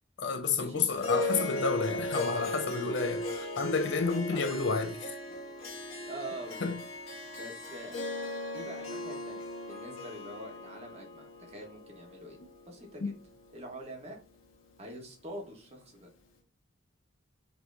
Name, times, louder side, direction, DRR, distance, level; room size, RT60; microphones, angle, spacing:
voice 1, 0.2-5.2 6.6-6.8 13.0-13.1, left 4 dB, 60° left, 0.5 m, -30 dB
Harp, 1.0-13.5, left 1 dB, 85° left, 1.2 m, -37 dB
voice 2, 6.0-6.7 7.3-8.0 8.5-13.1 13.5-14.2 14.8-16.1, right 1 dB, 30° right, 1.2 m, -45 dB
5.2 x 2.9 x 2.6 m
head